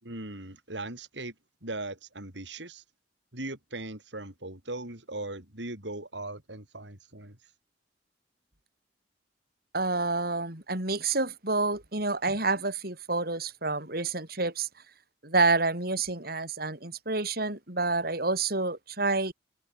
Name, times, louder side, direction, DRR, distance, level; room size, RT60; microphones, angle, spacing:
voice 1, 0.0-1.3 1.6-2.8 3.3-7.4, right 2 dB, 80° right, 6.0 m, -39 dB
voice 2, 9.7-14.7 15.2-19.3, right 3 dB, 55° right, 7.0 m, -28 dB
head